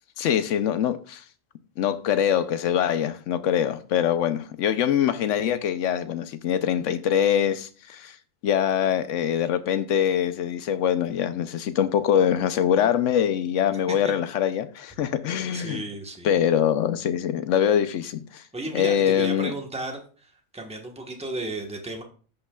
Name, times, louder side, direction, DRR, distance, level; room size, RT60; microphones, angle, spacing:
voice 1, 0.2-1.2 1.8-8.2 8.4-15.8 16.2-18.4 18.7-19.5, left 9 dB, 70° left, 1.0 m, -23 dB
voice 2, 15.5-16.4 18.5-22.0, right 2 dB, 5° right, 1.0 m, -34 dB
15.5 x 5.5 x 2.3 m
omnidirectional pair, 1.4 m